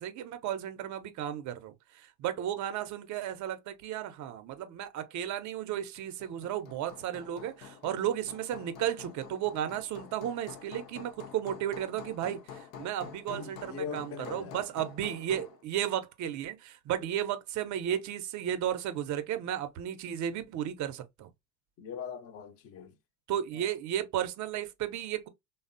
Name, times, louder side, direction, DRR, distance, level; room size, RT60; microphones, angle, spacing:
voice 1, 0.0-21.3 23.3-25.3, right 10 dB, 40° right, 0.5 m, -34 dB
Hammer, 6.0-15.6, left 7 dB, 85° left, 0.7 m, -48 dB
voice 2, 13.3-14.6 21.8-22.9 23.5-23.7, left 6 dB, 30° left, 0.5 m, -41 dB
3.3 x 2.0 x 2.5 m
hypercardioid pair, 85°, 50 cm